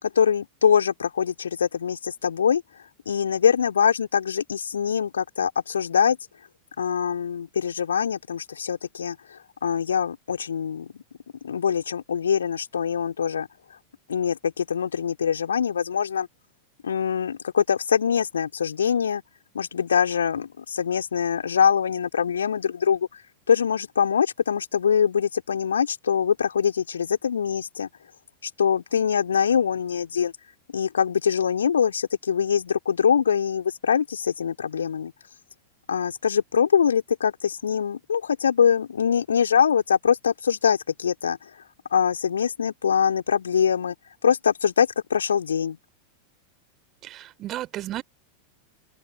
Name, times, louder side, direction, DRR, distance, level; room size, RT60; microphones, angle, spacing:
voice 1, 0.0-2.6 3.0-6.2 6.8-11.0 11.4-13.5 14.1-16.3 16.8-19.2 19.5-23.1 23.5-27.9 28.4-30.3 30.7-35.1 35.9-41.5 41.9-43.9 44.2-45.8, left 7 dB, 70° left, 3.1 m, -23 dB
voice 2, 47.0-48.0, right 14 dB, 35° right, 3.6 m, -33 dB
open air
figure-of-eight pair, 90°, 0 cm